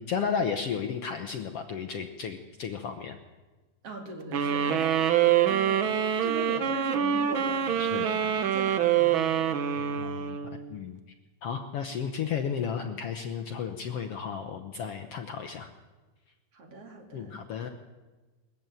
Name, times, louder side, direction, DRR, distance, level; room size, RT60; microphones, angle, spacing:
voice 1, 0.0-3.2 7.8-8.1 9.8-10.4 10.7-11.0 11.4-15.7 17.1-17.7, left 6 dB, 65° left, 6 dB, 1.5 m, -33 dB
voice 2, 3.8-4.9 5.4-9.6 16.5-17.7, right 3 dB, 45° right, 2 dB, 3.7 m, -41 dB
sound 1, 4.3-10.7, right 9 dB, 90° right, 1.1 m, -25 dB
21.5 x 14.0 x 9.2 m, 1.3 s
omnidirectional pair, 3.9 m